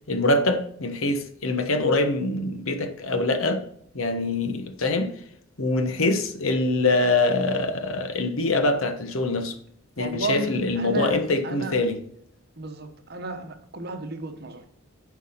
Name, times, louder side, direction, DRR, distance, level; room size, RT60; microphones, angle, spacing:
voice 1, 0.1-3.6 3.9-5.1 5.6-9.6 10.0-12.0, left 2 dB, 80° left, 1.1 m, -24 dB
voice 2, 10.0-11.2 11.4-11.7 12.6-14.6, right 3 dB, 50° right, 1.1 m, -32 dB
8.3 x 4.8 x 5.6 m
head